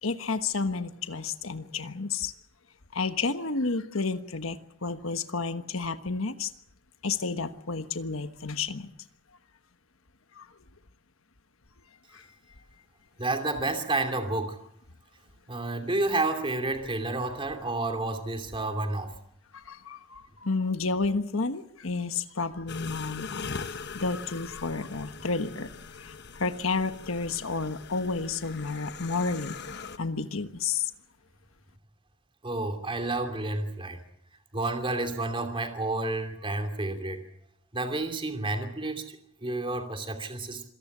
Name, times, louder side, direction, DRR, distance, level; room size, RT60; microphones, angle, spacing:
voice 1, 0.0-2.3 2.9-6.5 7.0-8.9 10.4-10.5 12.1-12.2 19.5-23.6 23.9-25.7 26.0-29.6 30.0-30.9, left 4 dB, 80° left, 9 dB, 1.3 m, -31 dB
voice 2, 13.2-14.6 15.5-19.1 32.4-34.0 34.5-37.2 37.7-40.6, right 2 dB, 25° right, 5 dB, 2.8 m, -30 dB
sound 1, 22.7-30.0, left 5 dB, 55° left, 1.1 m, -41 dB
26.5 x 18.0 x 7.4 m, 0.71 s
head